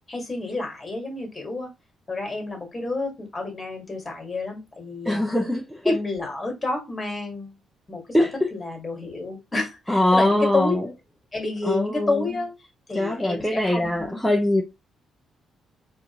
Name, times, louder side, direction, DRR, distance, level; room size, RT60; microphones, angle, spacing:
voice 1, 0.1-1.7 2.1-5.3 5.8-7.6 7.9-10.8 11.3-14.2, left 3 dB, 25° left, 1.7 m, -30 dB
voice 2, 5.0-6.0 8.1-8.3 9.9-10.9 11.6-12.3 12.9-14.6, left 1 dB, ahead, 0.6 m, -22 dB
4.1 x 2.6 x 2.9 m
cardioid pair, 90°, 0 cm